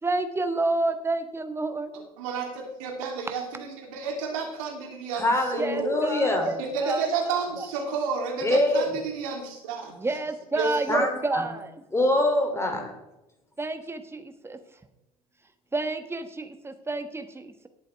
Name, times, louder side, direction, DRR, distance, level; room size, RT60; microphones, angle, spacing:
voice 1, 0.0-1.9 5.6-7.1 7.6-7.7 10.0-11.7 13.6-14.6 15.7-17.7, right 2 dB, 15° right, 9 dB, 1.4 m, -29 dB
voice 2, 1.9-6.0 6.6-10.2 10.5-11.0, right 5 dB, 65° right, 0 dB, 3.2 m, -31 dB
voice 3, 5.1-6.5 8.4-8.9 10.9-11.5 11.9-12.9, left 1 dB, 15° left, 3 dB, 3.1 m, -24 dB
18.5 x 8.4 x 3.5 m, 0.94 s
figure-of-eight pair, 65°, 19 cm